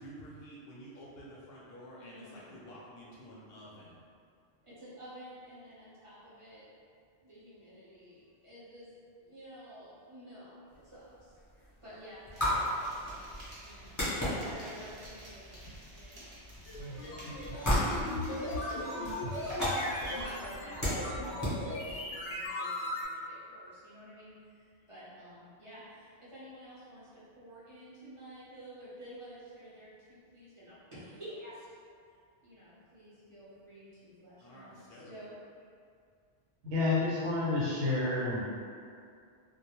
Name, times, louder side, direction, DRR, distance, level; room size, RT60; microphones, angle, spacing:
voice 1, 0.0-4.0 34.4-35.2, equal, 65° left, -6 dB, 0.8 m, -50 dB
voice 2, 2.0-2.7 4.6-6.6 7.2-8.9 9.2-12.5 12.8-16.3 16.7-31.7 32.4-35.3, equal, 35° right, -11 dB, 0.7 m, -51 dB
sound 1, 10.7-22.5, equal, 20° left, 0.6 m, -36 dB
sound 2, 12.3-20.4, right 1 dB, 60° right, 0.9 m, -52 dB
sound 3, 16.7-23.0, left 1 dB, 90° left, 0.9 m, -37 dB
voice 3, 36.6-38.4, left 3 dB, 85° right, -6 dB, 1.0 m, -29 dB
2.3 x 2.1 x 2.8 m, 2.3 s
omnidirectional pair, 1.2 m